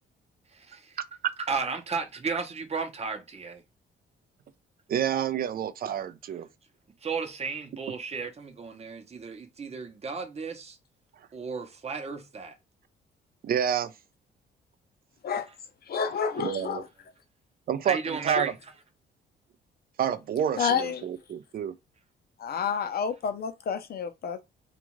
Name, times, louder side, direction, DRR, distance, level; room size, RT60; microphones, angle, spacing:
voice 1, 0.5-1.0 1.5-3.6 7.0-10.8 11.3-12.5 17.8-18.5, right 4 dB, 30° right, 0.8 m, -33 dB
voice 2, 4.9-6.5 13.4-13.9 16.4-16.8 17.7-18.5 20.0-21.8, right 9 dB, 50° right, 0.4 m, -29 dB
voice 3, 15.9-16.9 20.6-21.1 22.4-24.4, left 6 dB, 50° left, 0.6 m, -29 dB
2.4 x 2.4 x 3.0 m
cardioid pair, 90°, 20 cm